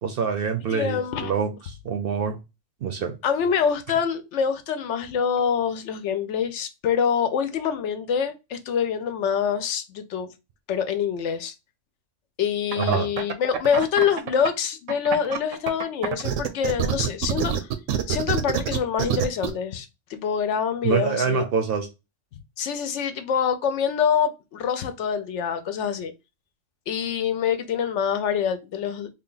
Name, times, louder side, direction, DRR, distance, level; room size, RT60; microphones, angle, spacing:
voice 1, 0.0-2.4 2.8-3.2 12.8-13.1 20.8-21.9, right 6 dB, 60° right, 0.7 m, -25 dB
voice 2, 0.7-1.3 3.2-10.3 10.7-11.5 12.4-17.5 18.1-21.4 22.6-26.1 26.9-29.1, left 7 dB, 70° left, 0.9 m, -25 dB
sound 1, 12.7-14.5 14.9-19.5, right 9 dB, 85° right, 1.0 m, -26 dB
3.5 x 2.3 x 3.7 m
omnidirectional pair, 1.3 m